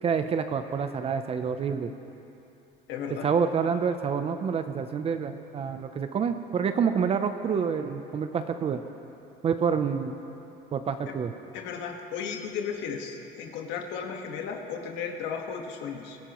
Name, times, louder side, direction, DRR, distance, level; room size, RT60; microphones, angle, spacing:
voice 1, 0.0-1.9 3.2-8.8 9.4-10.1 10.7-11.3, right 6 dB, 30° right, 8 dB, 0.6 m, -27 dB
voice 2, 2.9-3.3 11.5-16.2, left 6 dB, 80° left, 3 dB, 1.6 m, -35 dB
24.5 x 15.5 x 3.1 m, 2.9 s
cardioid pair, 145°, 19 cm